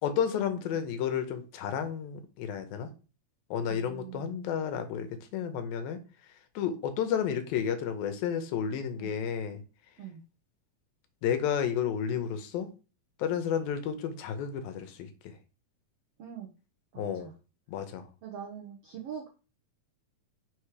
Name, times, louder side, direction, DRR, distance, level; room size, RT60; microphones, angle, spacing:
voice 1, 0.0-2.9 3.5-6.0 6.6-9.6 11.2-12.7 13.2-15.3 17.0-17.3 17.7-18.1, left 8 dB, 80° left, 2.7 m, -31 dB
voice 2, 3.6-4.4 9.0-9.2 10.0-10.2 16.2-16.5 16.9-17.3 18.2-19.3, right 8 dB, 80° right, 1.3 m, -43 dB
6.3 x 4.9 x 4.8 m
omnidirectional pair, 4.3 m